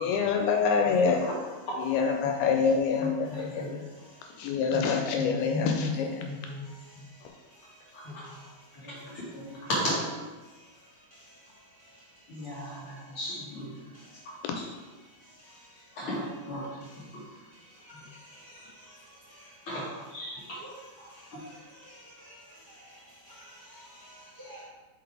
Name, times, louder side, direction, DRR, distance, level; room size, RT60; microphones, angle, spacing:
voice 1, 0.0-1.2 1.8-3.6 4.4-6.3, left 5 dB, 85° left, 3 dB, 2.5 m, -26 dB
voice 2, 1.1-1.4 3.0-3.8 4.7-4.8 5.1-5.9 6.2-6.7 6.9-7.0 7.9-8.4 8.7-10.2 12.3-13.7 14.2-14.3 15.9-17.2 19.7-20.4 21.0-21.1 21.3-21.4, left 1 dB, 60° left, -7 dB, 1.5 m, -35 dB
voice 3, 3.2-4.6 6.2-9.7 10.4-13.2 13.7-14.5 15.0-16.1 16.6-19.9 20.3-24.6, equal, 40° right, -10 dB, 1.0 m, -54 dB
5.4 x 3.9 x 4.7 m, 1.3 s
omnidirectional pair, 4.4 m